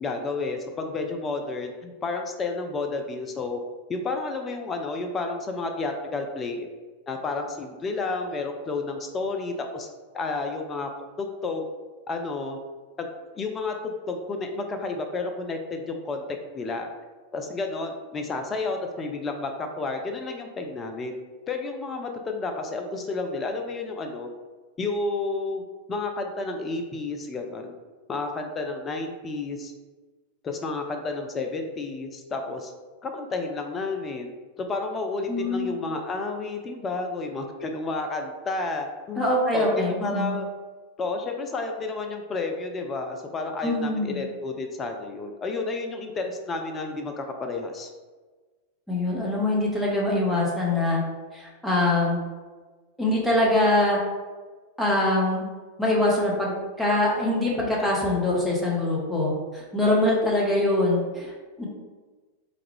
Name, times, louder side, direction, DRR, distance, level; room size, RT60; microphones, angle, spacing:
voice 1, 0.0-3.6 3.9-6.7 7.1-9.9 10.1-11.6 12.1-12.6 13.0-16.2 16.5-16.9 17.3-21.1 21.5-24.3 24.8-25.6 25.9-27.7 28.1-29.7 30.4-32.7 33.0-34.3 34.6-40.5 41.0-47.9, left 3 dB, 25° left, 4 dB, 0.3 m, -31 dB
voice 2, 35.3-35.7 39.2-40.3 43.6-44.2 48.9-51.0 51.3-52.2 53.0-54.0 54.8-55.4 55.8-61.7, left 1 dB, 5° left, -5 dB, 0.8 m, -23 dB
3.5 x 2.2 x 3.2 m, 1.3 s
figure-of-eight pair, 90°, 0 cm